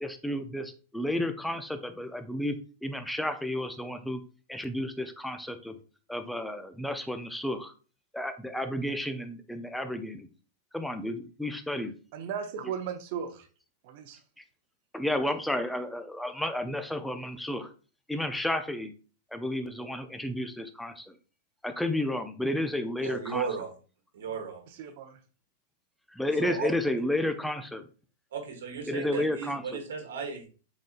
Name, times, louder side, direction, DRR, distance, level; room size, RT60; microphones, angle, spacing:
voice 1, 0.0-2.6 2.8-4.2 4.5-5.8 6.1-7.7 8.1-10.3 10.7-11.9 12.6-12.7 14.9-17.7 18.1-18.9 19.3-21.1 21.6-23.5 26.1-27.9 28.9-29.8, left 1 dB, 5° left, 8 dB, 0.5 m, -32 dB
voice 2, 12.1-13.5 13.8-14.2 24.8-25.2, right 7 dB, 55° right, 6 dB, 0.7 m, -36 dB
voice 3, 23.0-23.7 24.1-24.6 26.4-26.7 28.3-30.5, right 6 dB, 80° right, 2 dB, 1.3 m, -35 dB
4.0 x 3.6 x 2.5 m, 0.37 s
hypercardioid pair, 120°, 0 cm